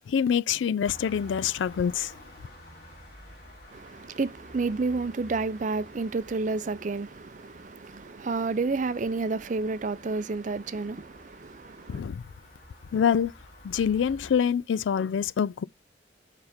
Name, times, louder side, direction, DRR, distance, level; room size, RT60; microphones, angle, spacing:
voice 1, 0.1-2.1 11.9-12.2 12.9-13.3 13.6-15.6, left 7 dB, 85° left, 0.3 m, -25 dB
sound 1, 0.8-14.4, equal, 50° left, 3.8 m, -50 dB
voice 2, 3.7-12.0, right 3 dB, 40° right, 0.5 m, -30 dB
7.1 x 5.0 x 3.4 m
head